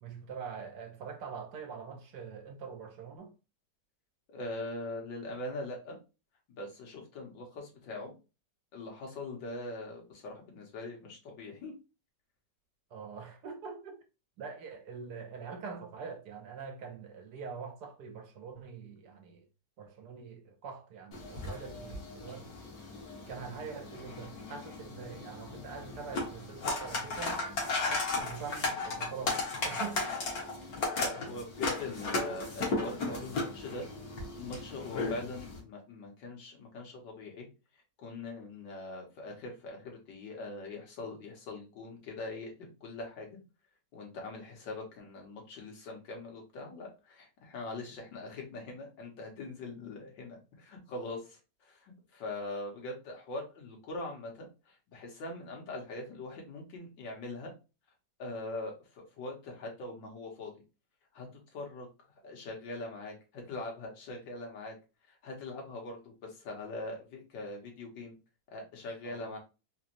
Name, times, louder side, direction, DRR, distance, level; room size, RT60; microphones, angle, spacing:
voice 1, 0.0-3.3 12.9-14.0 14.4-19.4 19.8-22.6 23.3-27.4 27.9-30.2 69.0-69.3, right 6 dB, 70° right, 1.2 m, -44 dB
voice 2, 4.3-6.0 6.5-8.1 8.7-11.7 31.0-33.9 34.4-37.5 37.7-43.4 43.9-57.5 58.2-60.5 61.1-61.3 61.5-61.9 62.2-64.7 65.1-68.2 68.5-69.4, left 2 dB, 85° left, 1.9 m, -42 dB
sound 1, 21.1-35.6, left 3 dB, 60° left, 1.5 m, -36 dB
3.9 x 3.0 x 2.6 m
omnidirectional pair, 1.9 m